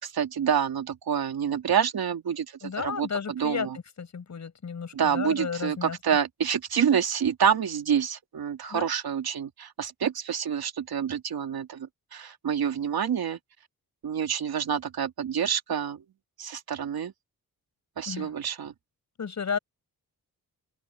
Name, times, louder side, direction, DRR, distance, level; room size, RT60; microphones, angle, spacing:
voice 1, 0.0-3.8 4.9-13.4 14.0-16.0 16.4-17.1 18.0-18.7, right 8 dB, 80° right, 2.8 m, -27 dB
voice 2, 2.6-3.7 4.0-6.0 8.7-8.9 18.1-18.3 19.2-19.6, left 6 dB, 50° left, 7.2 m, -33 dB
open air
wide cardioid pair, 180°, 37 cm